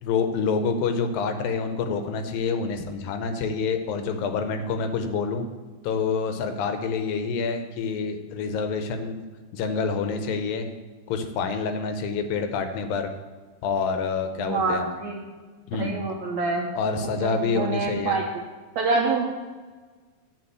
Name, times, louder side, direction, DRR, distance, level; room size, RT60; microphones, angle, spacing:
voice 1, 0.0-5.5 5.8-9.1 9.5-10.7 11.1-13.1 13.6-14.9 15.7-16.0 16.8-18.2, left 5 dB, 80° left, 7 dB, 2.5 m, -27 dB
voice 2, 14.4-15.2 15.8-16.7 17.2-18.3 18.7-19.2, right 3 dB, 75° right, 0 dB, 1.6 m, -26 dB
9.7 x 4.9 x 7.8 m, 1.4 s
omnidirectional pair, 4.3 m